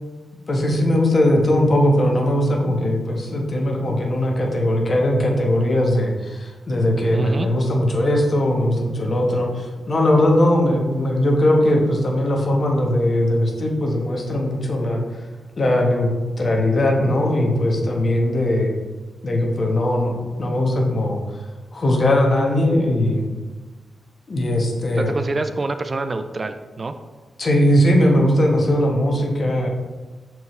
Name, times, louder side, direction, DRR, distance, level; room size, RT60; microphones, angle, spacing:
voice 1, 0.5-15.0 15.6-16.1 16.4-18.7 19.2-21.2 21.7-23.2 24.3-25.2 27.4-29.7, left 1 dB, 50° left, 0 dB, 1.2 m, -19 dB
voice 2, 7.1-7.5 25.0-26.9, right 3 dB, 40° right, 9 dB, 0.4 m, -25 dB
6.7 x 4.7 x 3.2 m, 1.3 s
cardioid pair, 75°, 0 cm